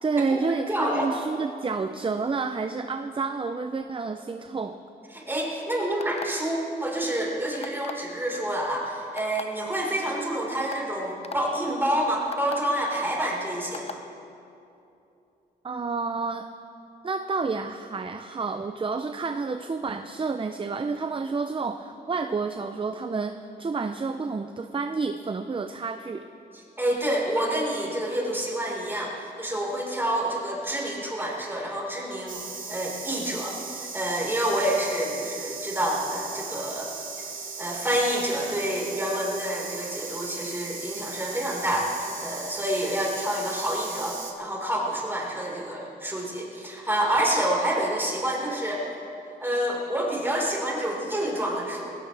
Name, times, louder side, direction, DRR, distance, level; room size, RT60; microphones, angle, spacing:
voice 1, 0.0-4.8 15.6-16.5 17.0-26.3, right 4 dB, 30° right, 8 dB, 0.6 m, -29 dB
voice 2, 0.7-1.1 5.1-14.0 26.8-32.4 32.7-36.9 37.2-37.3 37.6-48.8 49.4-52.0, right 1 dB, 10° right, -3 dB, 4.6 m, -28 dB
sound 1, 6.0-6.5 7.6-8.1 9.2-9.4 10.2-10.3 10.7-10.8 11.2-11.4 12.3-12.6 13.7-14.0, left 5 dB, 35° left, 0.6 m, -36 dB
sound 2, 32.3-44.3, right 4 dB, 50° right, 2.3 m, -37 dB
20.0 x 18.0 x 3.4 m, 2.8 s
cardioid pair, 85°, 18 cm